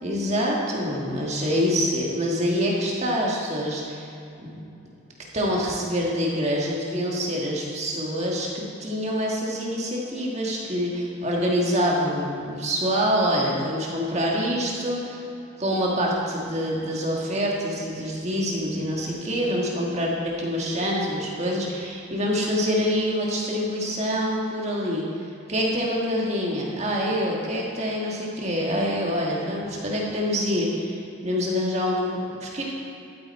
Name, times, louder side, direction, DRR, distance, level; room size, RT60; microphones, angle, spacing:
voice 1, 0.0-4.1 4.4-4.6 5.3-15.2 15.6-25.0 25.5-32.6, equal, 30° right, -3 dB, 1.6 m, -26 dB
12.5 x 8.6 x 4.3 m, 2.7 s
head